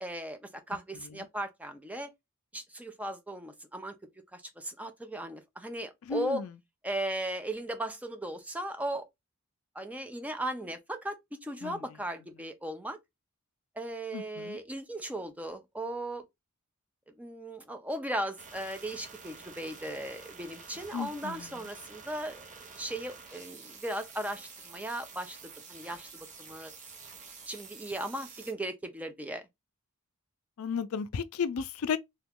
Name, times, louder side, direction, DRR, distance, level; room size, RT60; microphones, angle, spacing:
voice 1, 0.0-0.4 0.7-2.1 2.5-4.0 4.3-6.4 6.8-9.1 9.8-13.0 13.8-16.2 17.2-22.5 22.7-25.4 25.7-26.7 27.5-29.4, right 1 dB, 5° right, 0.5 m, -37 dB
voice 2, 6.1-6.5 11.6-11.8 14.1-14.6 20.9-21.5 30.6-32.0, left 6 dB, 70° left, 0.4 m, -34 dB
sound 1, 18.4-28.5, right 5 dB, 35° right, 0.9 m, -49 dB
2.9 x 2.3 x 3.5 m
head